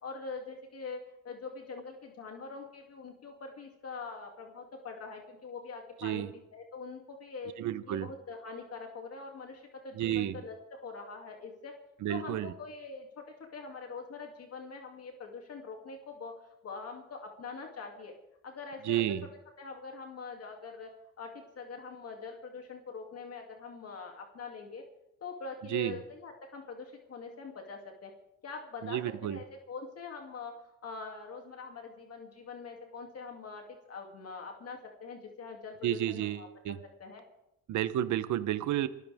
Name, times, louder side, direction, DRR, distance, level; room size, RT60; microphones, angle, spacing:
voice 1, 0.0-6.2 6.5-7.5 7.9-11.7 12.1-13.2 13.5-16.3 16.6-18.1 18.4-19.0 19.6-20.9 21.2-24.8 25.2-28.1 28.4-30.5 30.8-36.5 37.0-37.2, left 4 dB, 55° left, 2 dB, 2.7 m, -43 dB
voice 2, 6.0-6.3 7.6-8.1 9.9-10.4 12.0-12.5 18.8-19.3 25.7-26.0 28.8-29.4 35.8-36.8 37.7-38.9, right 12 dB, 75° right, 13 dB, 0.9 m, -31 dB
27.0 x 14.5 x 3.6 m, 0.87 s
cardioid pair, 90°, 30 cm